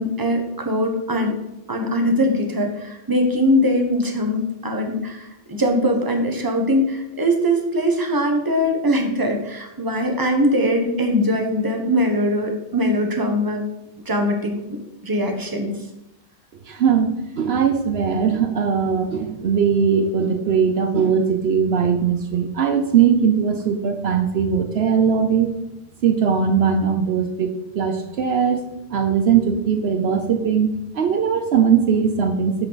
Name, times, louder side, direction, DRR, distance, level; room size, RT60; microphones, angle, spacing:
voice 1, 0.0-1.4 1.7-13.6 14.1-15.7, equal, 20° right, 3 dB, 1.1 m, -21 dB
voice 2, 16.7-17.1 17.4-25.5 26.0-28.6 28.9-30.7 30.9-32.7, right 7 dB, 70° right, 7 dB, 0.9 m, -19 dB
10.0 x 5.6 x 4.0 m, 0.92 s
omnidirectional pair, 1.1 m